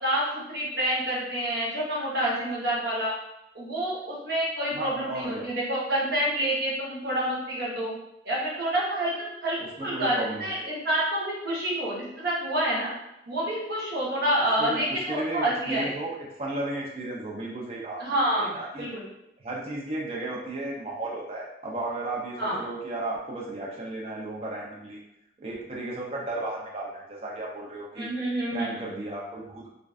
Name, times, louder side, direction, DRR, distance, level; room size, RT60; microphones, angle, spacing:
voice 1, 0.0-3.1 3.5-7.9 8.2-12.9 13.3-15.9 18.0-19.0 22.4-22.6 27.9-28.9, right 1 dB, 55° right, -6 dB, 0.8 m, -28 dB
voice 2, 4.7-5.5 9.6-10.5 14.6-18.0 18.3-18.9 19.4-25.0 25.4-28.1 28.5-29.7, right 2 dB, 35° right, -3 dB, 0.4 m, -34 dB
2.5 x 2.2 x 2.3 m, 0.86 s
head